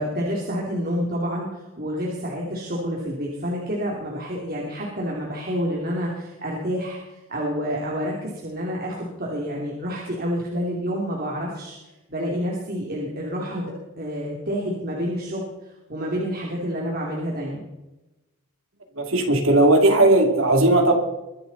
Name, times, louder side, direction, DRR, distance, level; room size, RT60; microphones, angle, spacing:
voice 1, 0.0-11.8 12.1-17.6, equal, 40° right, -3 dB, 2.8 m, -28 dB
voice 2, 19.0-20.9, right 2 dB, 60° right, 4 dB, 2.8 m, -17 dB
23.0 x 11.5 x 4.1 m, 1.0 s
head